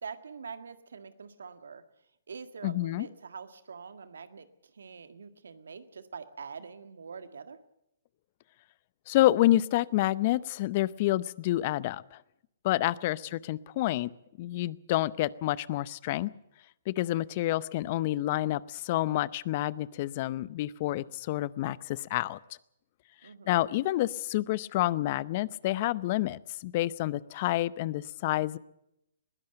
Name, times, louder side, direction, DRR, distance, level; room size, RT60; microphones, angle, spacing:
voice 1, 0.0-1.8 2.3-7.6 13.0-13.4 23.2-23.7, right 5 dB, 80° right, 10 dB, 1.7 m, -45 dB
voice 2, 2.6-3.1 9.1-12.2 12.6-14.1 14.4-16.3 16.9-22.4 23.5-28.6, left 15 dB, 45° left, 20 dB, 0.7 m, -28 dB
21.0 x 16.0 x 7.8 m, 0.80 s
hypercardioid pair, 135°, 0 cm